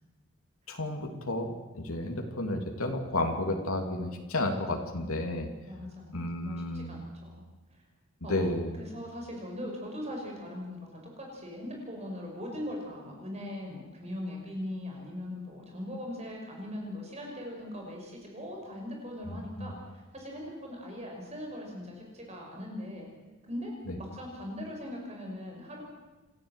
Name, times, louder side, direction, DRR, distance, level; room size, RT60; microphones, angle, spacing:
voice 1, 0.7-5.5 6.1-6.9 8.3-8.8 19.3-19.7 23.9-24.0, left 1 dB, 85° left, 3 dB, 2.8 m, -32 dB
voice 2, 5.7-7.4 7.7-7.8 8.2-8.5 8.8-23.1 23.5-25.9, left 1 dB, 30° right, 0 dB, 5.9 m, -40 dB
28.0 x 13.0 x 8.1 m, 1.1 s
head